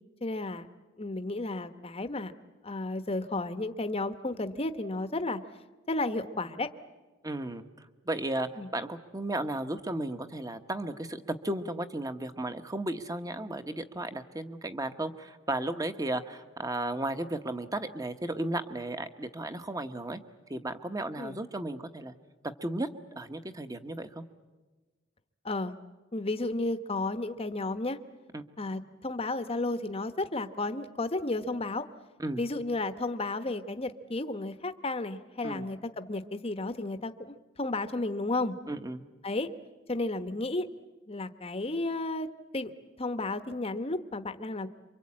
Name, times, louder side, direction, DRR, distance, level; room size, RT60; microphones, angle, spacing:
voice 1, 0.2-0.7 1.0-2.3 2.6-5.4 5.9-6.7 8.6-8.7 21.2-21.3 25.4-25.7 26.1-28.0 28.6-31.9 32.4-38.5 39.2-39.5 39.9-40.7 41.1-42.3 42.5-44.7, left 2 dB, 30° left, 10 dB, 1.0 m, -33 dB
voice 2, 7.2-7.6 8.0-20.2 20.5-22.1 22.4-24.2 28.3-28.4 32.2-32.4 35.4-35.7 38.7-39.0, right 1 dB, 20° right, 9 dB, 1.1 m, -34 dB
28.0 x 24.5 x 8.7 m, 1.2 s
head